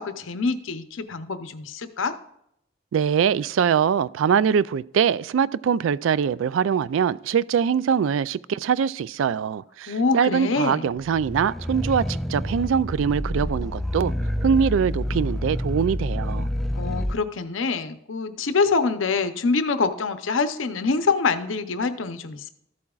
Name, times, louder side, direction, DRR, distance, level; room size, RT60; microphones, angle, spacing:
voice 1, 0.0-2.1 9.9-10.9 16.8-22.5, left 4 dB, 90° left, 0.7 m, -25 dB
voice 2, 2.9-14.1 14.4-16.5, right 7 dB, 80° right, 0.3 m, -23 dB
sound 1, 11.1-17.2, equal, ahead, 0.3 m, -28 dB
14.0 x 8.5 x 2.4 m
head